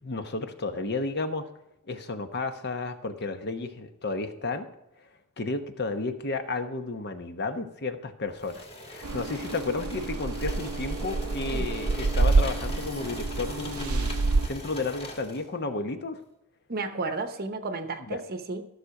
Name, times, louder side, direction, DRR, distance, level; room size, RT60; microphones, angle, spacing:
voice 1, 0.0-1.5 1.9-4.7 5.4-14.1 14.4-16.2 18.1-18.2, left 3 dB, 45° left, 8 dB, 1.0 m, -32 dB
sound 1, 8.4-15.5, left 1 dB, 25° left, 1.9 m, -41 dB
sound 2, 9.0-14.5, right 3 dB, 75° right, 0.6 m, -27 dB
voice 2, 16.7-18.7, right 3 dB, 45° right, 8 dB, 0.8 m, -33 dB
14.5 x 6.6 x 4.8 m, 0.89 s
head